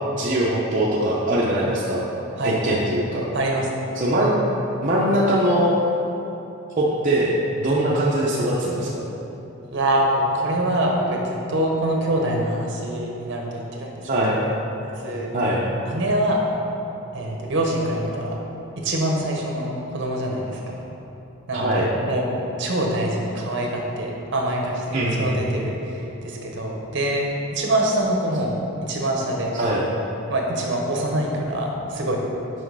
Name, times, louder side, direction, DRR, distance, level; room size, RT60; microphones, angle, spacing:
voice 1, 0.1-2.1 2.4-3.3 4.0-4.3 4.8-5.7 6.8-9.1 14.0-14.4 15.3-15.6 21.5-21.9 24.9-25.4 29.5-29.8, right 1 dB, 40° right, -6 dB, 0.7 m, -21 dB
voice 2, 2.4-2.8 3.3-3.9 9.7-14.0 14.3-14.6 14.8-15.3 15.8-16.5 17.1-18.4 18.8-20.8 21.5-22.2 22.6-27.2 27.5-28.6 28.8-29.6 30.3-32.2, right 1 dB, 55° right, 0 dB, 1.0 m, -25 dB
6.2 x 5.3 x 4.7 m, 3.0 s
head